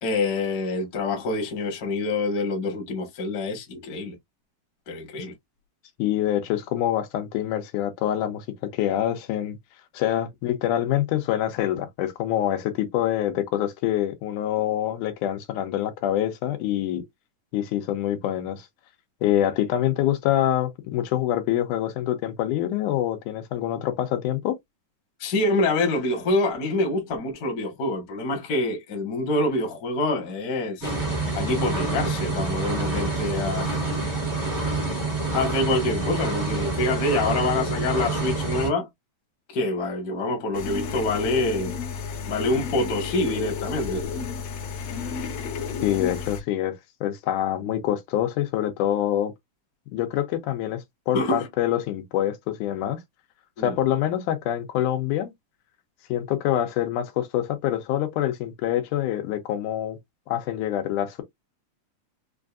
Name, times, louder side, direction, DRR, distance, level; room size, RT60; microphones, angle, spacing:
voice 1, 0.0-4.1 4.9-5.3 25.2-30.9 31.3-33.8 35.3-38.9 39.5-41.7 42.2-44.1 51.1-51.5 53.6-53.8, left 2 dB, 45° left, 1.2 m, -26 dB
voice 2, 6.0-8.5 8.7-9.6 9.9-17.0 17.5-18.7 19.2-24.6 45.8-46.7 47.0-49.3 49.9-53.0 53.6-55.3 56.1-60.0 60.3-61.2, left 12 dB, 85° left, 2.3 m, -25 dB
sound 1, 30.8-38.7, right 3 dB, 30° right, 0.3 m, -27 dB
sound 2, 40.5-46.4, left 6 dB, 65° left, 1.7 m, -32 dB
5.4 x 2.5 x 2.4 m
omnidirectional pair, 3.6 m